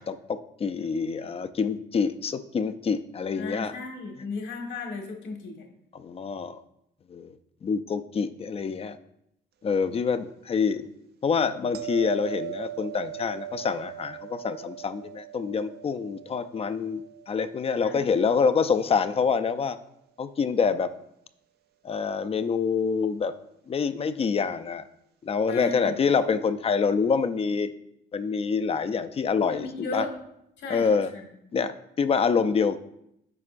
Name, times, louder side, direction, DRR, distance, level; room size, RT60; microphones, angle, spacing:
voice 1, 0.0-3.7 5.9-6.6 7.1-7.3 7.6-9.0 9.6-10.9 11.2-17.0 17.3-19.8 20.2-20.9 21.8-23.3 23.7-24.9 25.2-27.7 28.1-30.0 30.7-31.1 31.5-32.8, left 5 dB, 30° left, 11 dB, 0.4 m, -26 dB
voice 2, 3.4-5.7 17.8-18.0 25.5-26.0 29.5-30.1 30.6-30.9 31.1-31.2, left 3 dB, 75° left, 2 dB, 1.6 m, -35 dB
sound 1, 11.7-18.7 24.0-24.2, right 14 dB, 60° right, 0.5 m, -40 dB
9.5 x 5.2 x 2.5 m, 0.78 s
cardioid pair, 100°, 19 cm